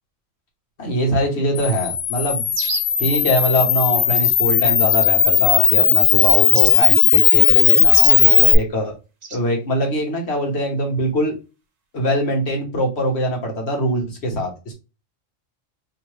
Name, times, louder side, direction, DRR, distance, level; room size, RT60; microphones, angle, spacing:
voice 1, 0.8-2.5 3.0-8.9 9.3-11.3 11.9-14.7, equal, 60° left, 1 dB, 1.5 m, -22 dB
Camera, 1.6-8.6, left 9 dB, 80° left, 1.0 m, -16 dB
sound 1, 2.5-3.0 4.1-4.3 4.9-5.4 6.5-6.7 7.9-8.2 9.2-9.4, right 4 dB, 45° right, 0.5 m, -29 dB
3.1 x 3.0 x 3.2 m, 0.28 s
omnidirectional pair, 1.3 m